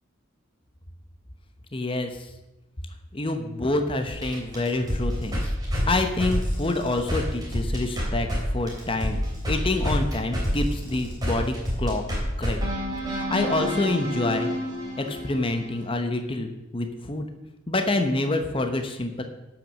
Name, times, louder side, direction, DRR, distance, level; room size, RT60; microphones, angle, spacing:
voice 1, 1.7-2.3 3.1-5.5 5.8-9.2 9.5-12.0 12.4-12.6 13.0-14.5 15.0-17.3 17.7-19.2, left 2 dB, 25° left, 6 dB, 0.9 m, -27 dB
sound 1, 4.1-8.4 8.7-15.9, equal, 20° right, 3.3 m, -28 dB
12.0 x 6.1 x 6.2 m, 1.0 s
head